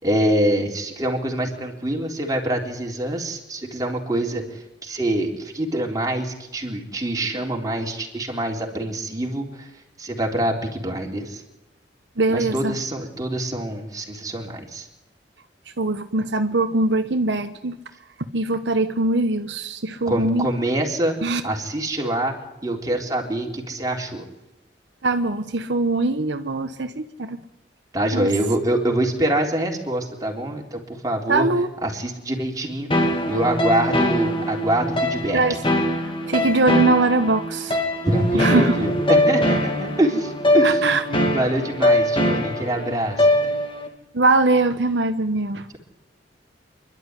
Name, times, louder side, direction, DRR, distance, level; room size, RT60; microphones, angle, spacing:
voice 1, 0.0-4.4 4.8-9.7 10.0-11.4 12.3-14.9 20.1-21.2 21.4-22.3 22.6-24.3 27.9-31.5 31.8-32.9 33.3-35.4 38.1-40.8 41.1-43.5, right 1 dB, 20° right, 0 dB, 3.9 m, -25 dB
voice 2, 12.2-12.8 15.8-17.7 18.3-20.5 21.2-21.4 25.0-27.4 28.1-28.3 31.3-31.7 35.3-35.6 36.3-37.8 38.3-38.8 40.6-41.0 44.1-45.7, right 2 dB, 75° right, 8 dB, 1.1 m, -21 dB
sound 1, 32.9-43.9, left 1 dB, 30° left, 2.8 m, -22 dB
26.5 x 12.0 x 9.8 m, 0.96 s
head